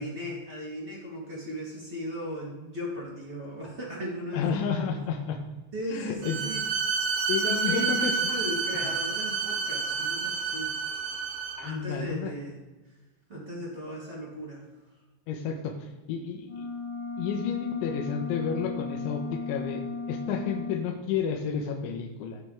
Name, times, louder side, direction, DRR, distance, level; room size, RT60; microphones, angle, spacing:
voice 1, 0.0-4.6 5.7-6.6 7.4-10.7 11.6-12.5 13.3-14.6, equal, 20° right, -4 dB, 2.2 m, -37 dB
voice 2, 4.3-5.4 5.9-6.4 7.3-8.2 8.7-8.9 11.6-12.4 15.3-16.7 17.2-22.4, left 6 dB, 80° left, 2 dB, 3.0 m, -31 dB
Bowed string instrument, 6.2-11.7, right 5 dB, 80° right, 2.2 m, -29 dB
sound 1, 16.4-20.8, left 3 dB, 45° left, 1.0 m, -36 dB
16.0 x 5.5 x 3.5 m, 1.1 s
omnidirectional pair, 5.7 m